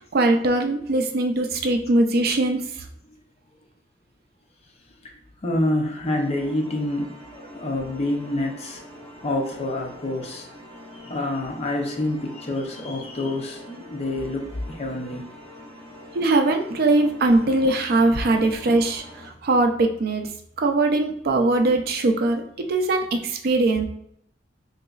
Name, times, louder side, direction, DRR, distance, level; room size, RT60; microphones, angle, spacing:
voice 1, 0.1-2.6 16.1-20.3 20.6-22.4 22.7-23.8, right 2 dB, 55° right, 4 dB, 0.4 m, -21 dB
voice 2, 5.4-8.8 9.2-10.5 11.0-15.2 18.4-18.5, left 1 dB, 35° left, 1 dB, 0.6 m, -27 dB
sound 1, 6.0-19.3, left 1 dB, 10° left, 1.1 m, -44 dB
3.8 x 2.9 x 2.4 m, 0.69 s
head